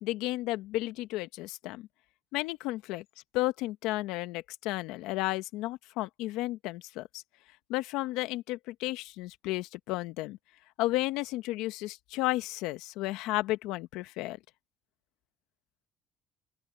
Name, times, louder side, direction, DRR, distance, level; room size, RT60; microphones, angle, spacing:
voice 1, 0.0-1.9 2.3-3.0 3.3-7.2 7.7-10.4 10.8-14.4, left 18 dB, 80° left, 1.2 m, -33 dB
open air
supercardioid pair, 100°, 0 cm